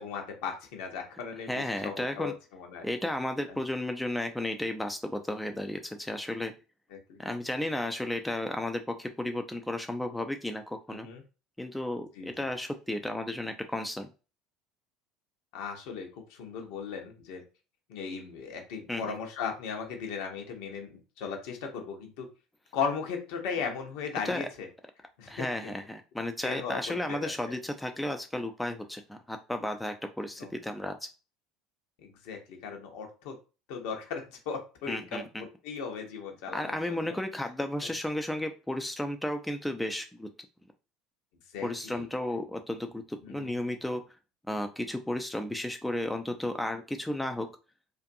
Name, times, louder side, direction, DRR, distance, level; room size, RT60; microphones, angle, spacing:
voice 1, 0.0-2.9 6.9-7.2 10.9-11.2 12.1-12.3 15.5-17.4 17.9-22.3 22.7-24.7 25.2-25.7 26.4-27.5 30.4-30.5 32.0-33.4 33.7-37.2 41.5-42.1 43.2-43.5, left 6 dB, 60° left, 3 dB, 0.7 m, -37 dB
voice 2, 1.5-2.3 2.8-6.5 7.2-11.1 11.6-14.1 18.9-19.1 24.2-24.5 25.3-31.0 34.9-35.4 36.5-40.3 41.6-44.0 44.5-47.5, left 1 dB, 5° left, 5 dB, 0.3 m, -33 dB
2.5 x 2.4 x 2.6 m, 0.33 s
figure-of-eight pair, 65°, 0 cm